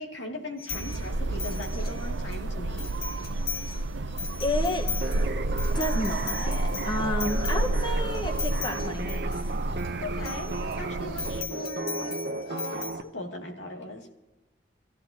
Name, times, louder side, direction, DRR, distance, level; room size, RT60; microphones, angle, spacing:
voice 1, 0.0-2.9 10.0-14.1, left 1 dB, 80° left, 0 dB, 2.6 m, -39 dB
sound 1, 0.6-2.3 2.7-3.8 4.1-9.9 10.2-10.7 11.2-12.9, left 7 dB, 55° left, 2.4 m, -38 dB
sound 2, 0.7-11.4, right 2 dB, 90° right, 0.7 m, -30 dB
voice 2, 4.4-4.9 5.7-9.2, left 1 dB, 25° left, 1 dB, 1.4 m, -31 dB
sound 3, 5.0-13.0, right 2 dB, 55° right, 0.8 m, -35 dB
25.5 x 15.0 x 2.9 m, 1.1 s
head